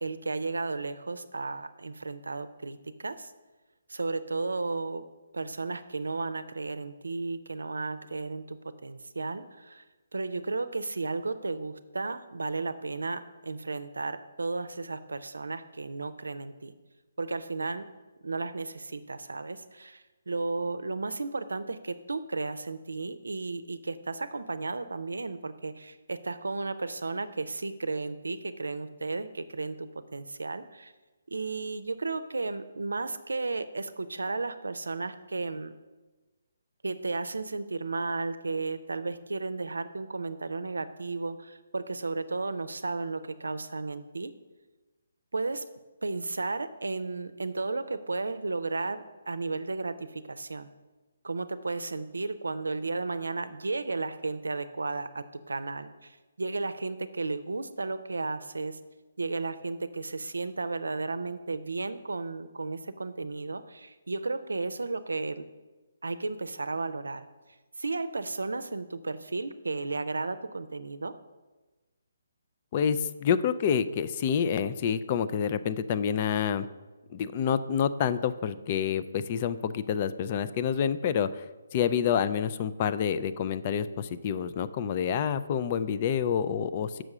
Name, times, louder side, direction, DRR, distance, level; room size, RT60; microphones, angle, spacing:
voice 1, 0.0-3.3 3.9-5.0 5.3-9.8 10.1-16.7 17.2-17.9 18.2-30.9 31.3-35.7 36.8-44.3 45.3-45.6 46.0-50.7 51.2-58.8 59.2-65.5 66.0-67.3 67.8-71.2, right 3 dB, 90° right, 12 dB, 0.5 m, -34 dB
voice 2, 72.7-76.7 77.1-81.4 81.7-87.0, left 8 dB, 35° left, 12 dB, 0.4 m, -28 dB
6.2 x 4.8 x 6.6 m, 1.2 s
hypercardioid pair, 150°, 0 cm